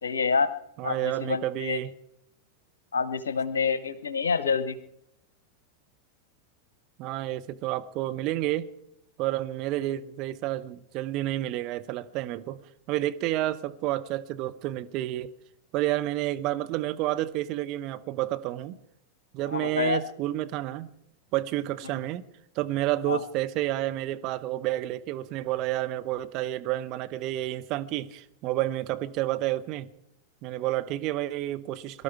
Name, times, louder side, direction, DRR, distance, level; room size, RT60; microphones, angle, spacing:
voice 1, 0.0-0.5 0.8-1.8 2.9-4.8 19.5-20.0 23.1-23.2, left 5 dB, 70° left, 1.1 m, -27 dB
voice 2, 0.8-1.9 7.0-8.7 9.2-15.3 15.7-18.8 19.3-20.9 21.3-22.3 22.5-29.9 30.4-32.0, right 15 dB, 40° right, 1.0 m, -30 dB
23.0 x 12.5 x 4.7 m
figure-of-eight pair, 90°, 0 cm